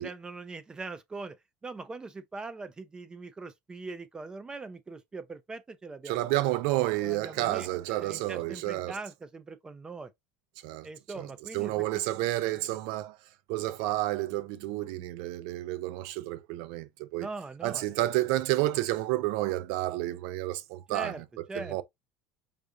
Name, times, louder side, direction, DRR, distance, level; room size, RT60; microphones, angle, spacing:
voice 1, 0.0-1.4 1.6-6.3 7.0-10.1 10.8-12.0 17.2-18.0 20.9-21.2 21.5-21.8, right 3 dB, 20° right, 0.4 m, -41 dB
voice 2, 6.1-9.0 10.6-10.9 11.1-11.3 11.5-13.2 13.5-17.3 17.6-21.8, right 16 dB, 80° right, 0.5 m, -30 dB
4.9 x 2.4 x 2.6 m
cardioid pair, 125°, 5 cm